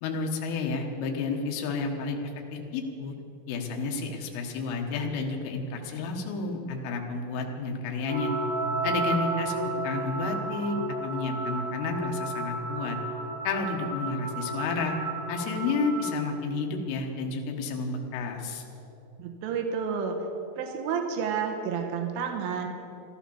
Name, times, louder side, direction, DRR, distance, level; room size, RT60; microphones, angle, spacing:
voice 1, 0.0-2.2 2.5-3.1 3.5-8.3 8.8-10.8 11.0-13.0 13.5-14.9 15.3-18.6, left 4 dB, 80° left, 2 dB, 3.9 m, -31 dB
sound 1, 8.1-16.2, right 2 dB, 55° right, 4.1 m, -32 dB
voice 2, 19.2-20.2 20.6-22.7, right 6 dB, 80° right, 3 dB, 3.5 m, -30 dB
15.0 x 12.5 x 7.1 m, 2.9 s
omnidirectional pair, 5.8 m